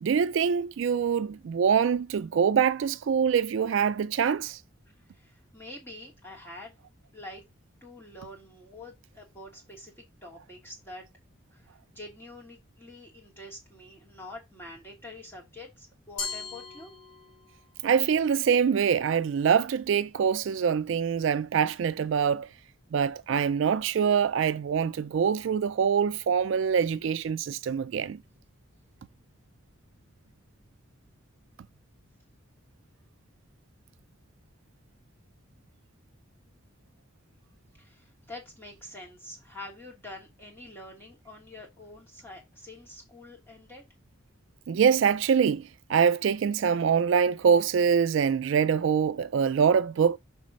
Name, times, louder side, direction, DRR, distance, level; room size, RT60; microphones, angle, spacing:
voice 1, 0.0-4.6 17.8-22.5 22.9-28.2 44.7-50.2, right 7 dB, 60° right, 0.3 m, -24 dB
voice 2, 5.1-6.7 7.1-7.4 7.8-11.0 11.5-16.9 37.8-43.8, left 1 dB, 10° left, 2.8 m, -46 dB
Glass, 16.2-17.6, left 4 dB, 60° left, 3.0 m, -38 dB
6.3 x 4.1 x 5.2 m
head